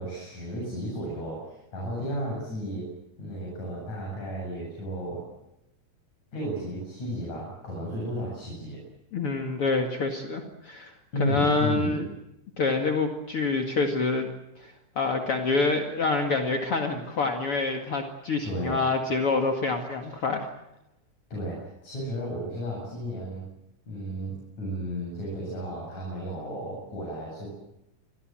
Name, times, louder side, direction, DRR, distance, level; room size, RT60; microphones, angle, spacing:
voice 1, 0.0-2.9 3.2-5.3 6.3-8.8 11.1-12.0 18.4-18.9 21.3-23.5 23.9-27.5, equal, 65° left, -2 dB, 9.1 m, -33 dB
voice 2, 9.1-10.9 11.2-12.1 12.6-14.3 14.6-20.5, left 3 dB, 50° left, 3 dB, 2.8 m, -27 dB
28.0 x 23.0 x 7.7 m, 0.88 s
omnidirectional pair, 3.6 m